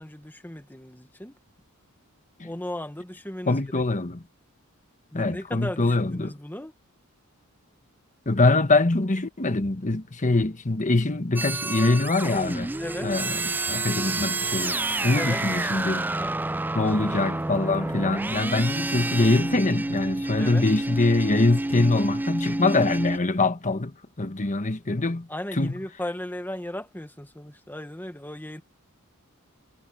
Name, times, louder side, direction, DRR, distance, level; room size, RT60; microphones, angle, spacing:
voice 1, 0.0-1.4 2.4-3.7 5.1-6.7 12.8-13.1 15.1-16.4 20.4-20.6 25.3-28.6, left 1 dB, 10° left, 1.3 m, -36 dB
voice 2, 3.5-4.2 5.1-6.3 8.2-12.7 13.0-16.1 16.7-25.7, left 2 dB, 35° left, 1.3 m, -24 dB
sound 1, 11.4-23.2, right 2 dB, 10° right, 0.3 m, -29 dB
head